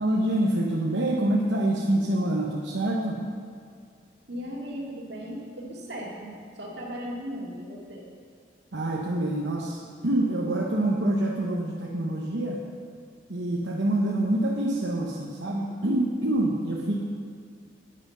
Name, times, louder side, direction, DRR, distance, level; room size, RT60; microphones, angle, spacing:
voice 1, 0.0-3.2 8.7-12.6 13.3-17.0, right 1 dB, 80° right, -2 dB, 1.0 m, -26 dB
voice 2, 4.3-8.1, equal, 65° right, -3 dB, 2.2 m, -37 dB
9.8 x 9.2 x 5.4 m, 2.2 s
head